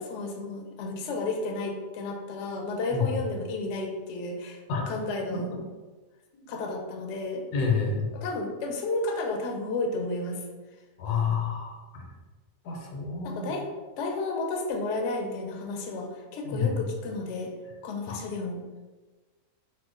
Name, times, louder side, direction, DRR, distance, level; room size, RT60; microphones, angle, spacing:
voice 1, 0.0-4.6 4.9-5.5 6.5-7.5 8.1-10.4 13.2-13.7 14.0-17.5 17.8-18.6, left 2 dB, 65° left, 2 dB, 0.7 m, -32 dB
voice 2, 7.5-8.1 11.0-12.1 12.6-13.5 16.4-16.7 18.1-18.2, left 5 dB, 85° left, 0 dB, 1.2 m, -28 dB
2.8 x 2.1 x 3.7 m, 1.2 s
omnidirectional pair, 1.6 m